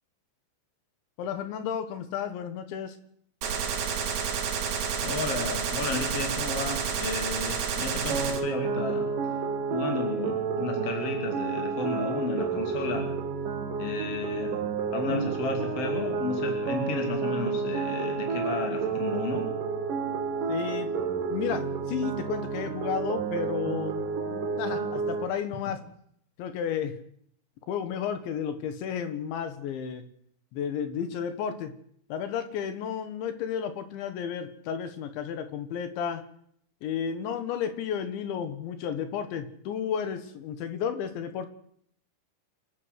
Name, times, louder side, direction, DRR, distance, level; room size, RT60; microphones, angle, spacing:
voice 1, 1.2-3.0 20.5-20.9 21.3-25.8 26.4-26.9 27.7-30.1 30.5-31.7 32.1-36.2 36.8-41.5, left 8 dB, 70° left, 10 dB, 3.6 m, -32 dB
Gunshot gunfire, 3.4-8.4, right 7 dB, 80° right, 5.8 m, -30 dB
voice 2, 5.0-9.1 9.7-13.1 13.8-19.5, left 3 dB, 35° left, 4 dB, 2.9 m, -33 dB
sound 1, 8.1-25.2, right 5 dB, 50° right, 3.3 m, -30 dB
27.5 x 12.5 x 8.2 m, 0.66 s
omnidirectional pair, 5.9 m